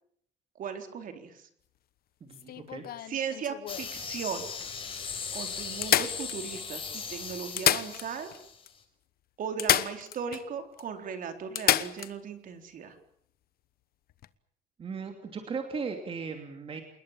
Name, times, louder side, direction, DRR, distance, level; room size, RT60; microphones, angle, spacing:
voice 1, 0.6-1.5 3.1-4.5 5.3-8.3 9.4-13.0, right 7 dB, 50° right, 6 dB, 4.0 m, -37 dB
voice 2, 2.2-2.8 14.8-16.8, right 5 dB, 30° right, 4 dB, 3.0 m, -37 dB
sound 1, 2.3-3.9 4.6-4.7 5.0-5.1 5.8-6.8 7.4-8.4 8.7-8.8 9.6-10.5 10.8-10.9 11.6-12.1 14.1-14.3, left 12 dB, 55° left, 1.1 m, -29 dB
sound 2, 3.7-8.8, left 6 dB, 30° left, 5.0 m, -38 dB
28.5 x 21.0 x 7.4 m, 0.67 s
cardioid pair, 175°, 18 cm